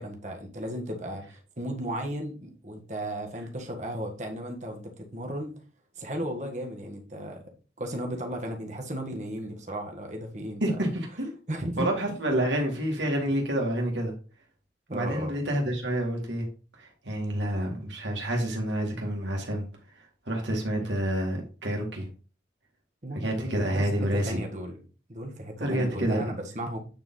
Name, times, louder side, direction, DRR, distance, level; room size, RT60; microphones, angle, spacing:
voice 1, 0.0-5.5 6.0-7.5 7.8-10.9 11.5-11.9 14.9-15.3 20.8-20.9 23.0-24.8 25.1-26.8, right 1 dB, 40° right, 1.6 m, -35 dB
voice 2, 10.6-11.3 11.8-14.1 14.9-16.5 16.8-19.6 20.3-22.1 23.1-24.4 25.6-26.2, right 1 dB, 80° right, 2.1 m, -28 dB
8.8 x 4.6 x 3.9 m
head